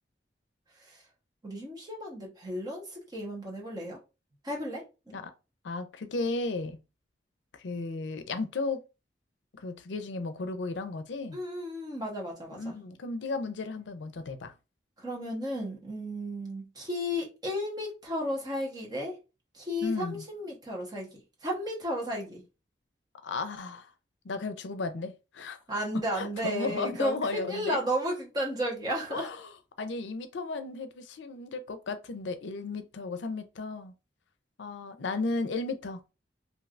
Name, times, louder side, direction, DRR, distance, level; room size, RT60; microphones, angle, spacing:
voice 1, 1.4-4.0 4.4-5.1 11.3-12.7 15.0-19.2 19.5-22.4 25.7-29.3, equal, 25° right, 1.0 m, -34 dB
voice 2, 5.6-6.8 7.6-8.8 9.5-11.4 12.5-14.5 19.8-20.2 23.2-23.9 24.2-25.6 26.2-27.8 29.1-29.4 29.8-33.9 34.6-36.0, left 3 dB, 85° left, 0.5 m, -34 dB
3.2 x 2.7 x 2.4 m
head